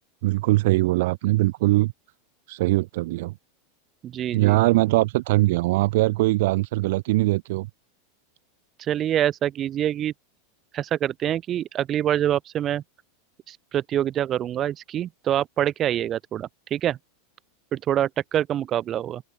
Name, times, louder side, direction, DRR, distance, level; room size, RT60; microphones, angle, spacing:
voice 1, 0.2-1.9 2.5-3.3 4.3-7.7, right 19 dB, 65° right, 2.2 m, -21 dB
voice 2, 4.0-4.6 8.8-10.1 10.7-12.8 13.5-17.0 17.7-19.2, right 11 dB, 25° right, 5.2 m, -25 dB
open air
supercardioid pair, 150°, 0 cm